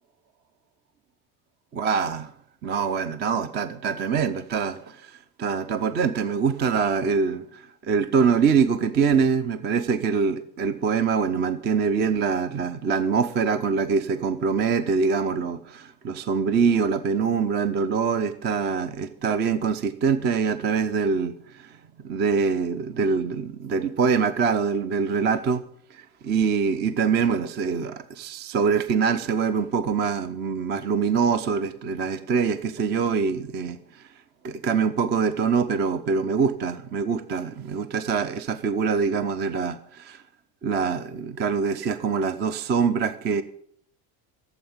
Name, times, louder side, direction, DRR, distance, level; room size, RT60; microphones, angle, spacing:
voice 1, 1.8-2.2 2.6-21.8 22.0-25.6 25.9-34.0 34.4-40.2 40.6-43.4, right 5 dB, 25° right, 0.4 m, -24 dB
15.0 x 8.0 x 7.2 m
cardioid pair, 150°, 47 cm